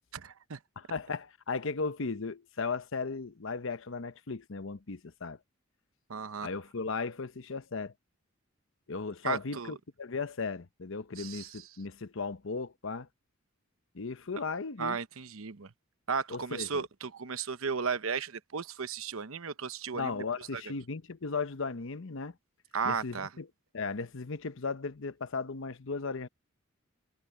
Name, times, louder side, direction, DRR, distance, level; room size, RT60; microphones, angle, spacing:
voice 1, 0.1-0.6 6.1-6.5 9.2-9.7 11.2-11.6 14.8-15.7 16.1-20.2 20.5-20.6 22.7-23.3, right 5 dB, 85° right, 0.9 m, -35 dB
voice 2, 0.8-5.4 6.4-7.9 8.9-13.1 13.9-15.0 16.3-16.8 19.9-22.3 22.8-23.5 23.7-26.3, left 4 dB, 70° left, 0.9 m, -36 dB
head